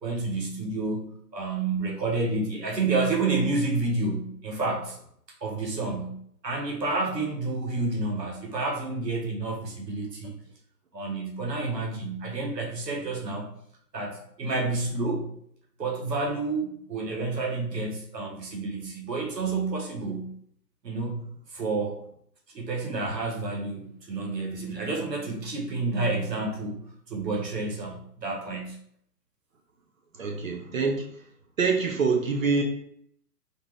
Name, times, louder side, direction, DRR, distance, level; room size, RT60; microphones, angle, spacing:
voice 1, 0.0-1.0 1.3-5.0 5.4-6.2 6.4-10.3 10.9-13.5 13.9-15.3 15.8-20.3 20.8-22.0 22.5-26.8 27.1-28.8, right 3 dB, 85° right, 0 dB, 1.5 m, -29 dB
voice 2, 30.1-31.0 31.6-32.6, right 4 dB, 55° right, 2 dB, 0.8 m, -25 dB
4.2 x 2.9 x 3.3 m, 0.65 s
hypercardioid pair, 160°, 49 cm